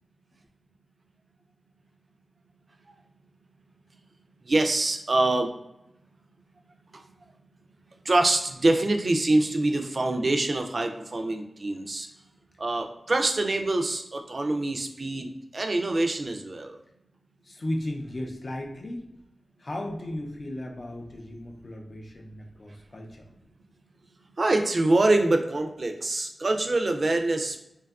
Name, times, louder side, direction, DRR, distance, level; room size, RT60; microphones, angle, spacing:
voice 1, 4.5-5.5 8.0-12.1 12.6-16.8 24.4-27.6, right 2 dB, 55° right, 4 dB, 0.3 m, -25 dB
voice 2, 17.4-19.1 19.6-23.3, left 1 dB, 50° left, 1 dB, 0.4 m, -35 dB
2.7 x 2.3 x 2.3 m, 0.84 s
cardioid pair, 55°, 0 cm